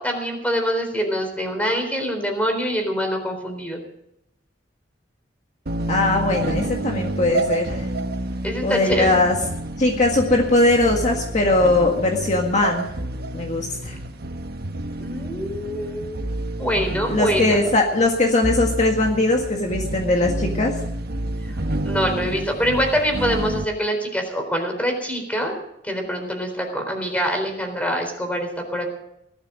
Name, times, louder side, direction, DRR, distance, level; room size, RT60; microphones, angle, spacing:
voice 1, 0.0-3.8 8.4-9.1 15.0-16.2 16.6-17.6 21.8-25.5 25.8-28.9, equal, 10° left, 4 dB, 3.9 m, -25 dB
sound 1, 5.7-23.6, right 1 dB, 55° right, 1.2 m, -29 dB
voice 2, 5.9-7.8 8.6-9.4 9.8-12.9 13.3-14.0 17.1-20.7, left 2 dB, 40° left, 1 dB, 1.8 m, -20 dB
18.5 x 12.5 x 5.0 m, 0.81 s
head